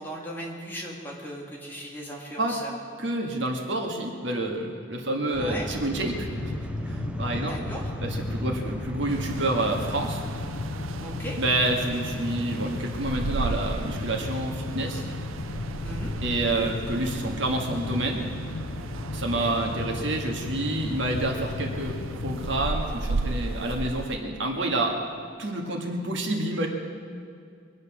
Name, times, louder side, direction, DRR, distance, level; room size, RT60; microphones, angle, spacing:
voice 1, 0.0-2.7 5.4-5.7 7.4-7.8 11.0-11.4 15.8-16.1 19.3-19.6, equal, 10° left, -3 dB, 2.2 m, -38 dB
voice 2, 3.0-7.6 8.0-10.2 11.4-15.0 16.2-18.2 19.1-24.9 25.4-26.7, right 2 dB, 65° right, 1 dB, 1.9 m, -28 dB
sound 1, 5.3-23.8, equal, 5° right, 0.4 m, -41 dB
sound 2, 6.0-22.7, left 3 dB, 75° left, 0.6 m, -35 dB
sound 3, 9.1-24.2, right 3 dB, 90° right, 0.6 m, -36 dB
23.5 x 9.6 x 6.2 m, 2.3 s
head